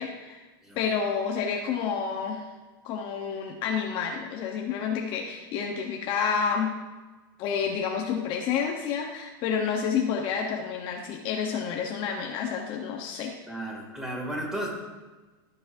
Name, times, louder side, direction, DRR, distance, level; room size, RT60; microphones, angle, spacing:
voice 1, 0.0-0.4 0.7-2.5 2.8-6.7 7.4-13.3, left 6 dB, 40° left, 1 dB, 1.1 m, -29 dB
voice 2, 13.5-14.7, right 1 dB, 5° right, -1 dB, 2.6 m, -34 dB
16.0 x 7.4 x 2.7 m, 1.2 s
supercardioid pair, 140°, 12 cm